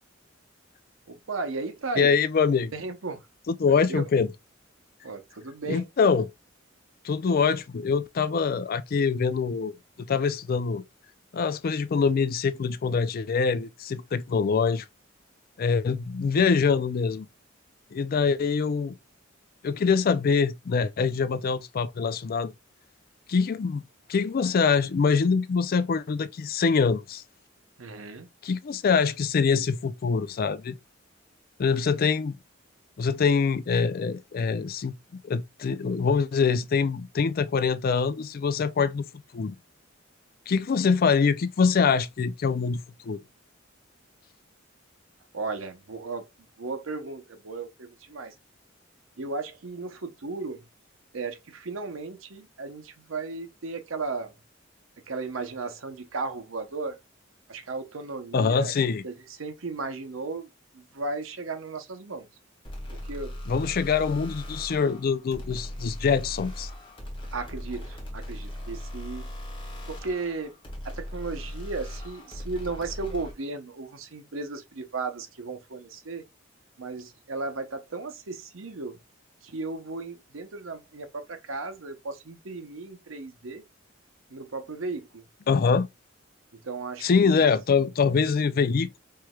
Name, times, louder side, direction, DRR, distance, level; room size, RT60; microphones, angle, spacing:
voice 1, 1.1-2.1 2.7-3.3 3.7-4.1 5.0-5.9 18.2-18.5 27.8-28.3 45.3-46.3 46.6-48.3 49.2-50.7 51.1-54.3 55.1-57.0 57.5-58.7 59.0-62.3 63.0-63.4 67.3-69.3 69.9-70.6 70.8-76.2 76.8-79.0 79.4-83.6 84.3-85.2 86.6-87.4, right 3 dB, 85° right, 0.8 m, -35 dB
voice 2, 2.0-2.7 3.5-4.3 5.7-6.3 7.0-9.7 10.0-10.8 11.3-14.9 15.6-17.3 17.9-19.0 19.6-22.5 23.3-23.8 24.1-27.2 28.4-30.7 31.6-32.4 33.0-34.9 35.2-39.1 39.3-39.6 40.5-43.2 58.3-59.0 63.5-66.7 85.5-85.9 87.0-89.0, left 5 dB, 50° left, 0.4 m, -24 dB
sound 1, 62.6-73.3, left 1 dB, 25° left, 1.6 m, -38 dB
4.6 x 3.1 x 2.3 m
head